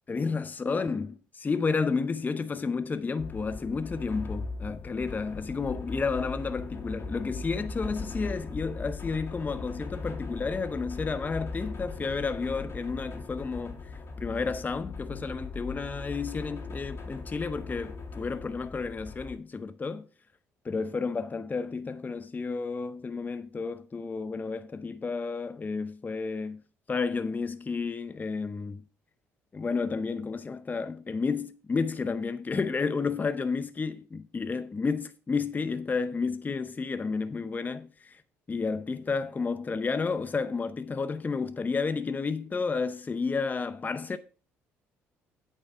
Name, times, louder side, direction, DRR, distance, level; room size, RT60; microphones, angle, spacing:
voice 1, 0.1-20.0 20.6-26.6 26.9-28.8 29.5-38.2 38.5-44.2, left 4 dB, 30° left, 0.6 m, -31 dB
sound 1, 3.2-19.4, left 3 dB, 45° left, 2.3 m, -39 dB
8.7 x 6.6 x 4.9 m
hypercardioid pair, 60°, 6 cm